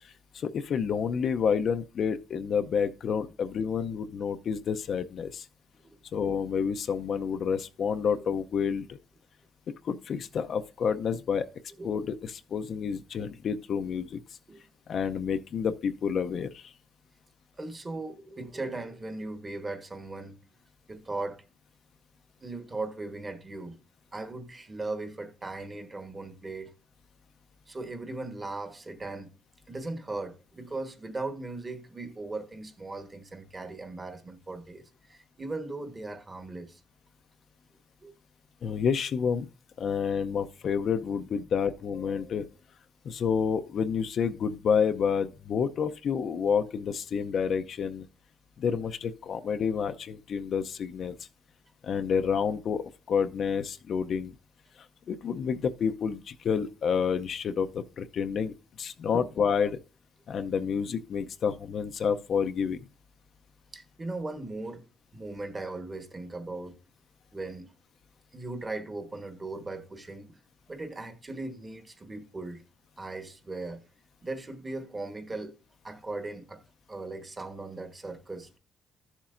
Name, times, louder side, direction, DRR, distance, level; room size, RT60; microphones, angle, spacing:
voice 1, 0.0-5.5 6.1-8.9 9.8-11.5 11.8-14.2 14.9-16.7 38.6-39.5 39.8-42.5 43.0-48.1 48.6-51.2 51.8-54.3 55.1-59.8 60.3-62.8, left 6 dB, 60° left, 0.6 m, -29 dB
voice 2, 17.6-20.4 20.9-21.4 22.4-23.8 24.1-26.7 27.7-29.3 29.7-36.8 38.0-38.1 38.7-38.8 59.1-59.3 63.7-64.9 65.1-66.8 67.3-67.7 68.3-70.4 70.7-72.6 73.0-73.8 74.2-75.5 75.8-76.6 76.9-78.6, right 2 dB, 25° right, 1.3 m, -38 dB
13.0 x 7.2 x 2.5 m
cardioid pair, 90°, 0 cm